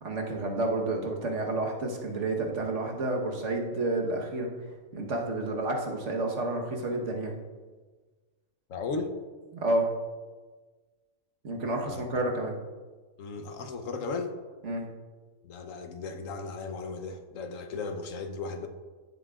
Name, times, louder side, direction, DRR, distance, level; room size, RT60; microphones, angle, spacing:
voice 1, 0.0-4.5 4.9-7.3 9.5-9.9 11.4-12.6 14.6-14.8, right 2 dB, 70° right, 1 dB, 1.5 m, -30 dB
voice 2, 8.7-9.2 11.9-12.0 13.2-14.4 15.4-18.7, left 4 dB, 90° left, 7 dB, 1.2 m, -36 dB
14.0 x 7.5 x 2.4 m, 1.4 s
omnidirectional pair, 1.3 m